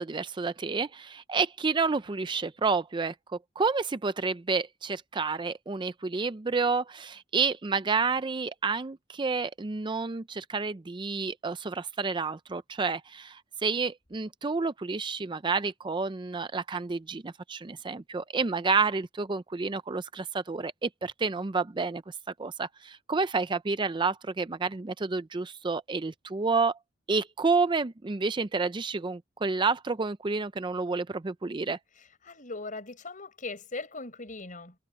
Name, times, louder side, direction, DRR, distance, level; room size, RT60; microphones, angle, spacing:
voice 1, 0.0-3.1 3.6-26.8 27.1-31.8, right 4 dB, 25° right, 0.5 m, -29 dB
voice 2, 32.2-34.8, left 3 dB, 45° left, 5.3 m, -39 dB
head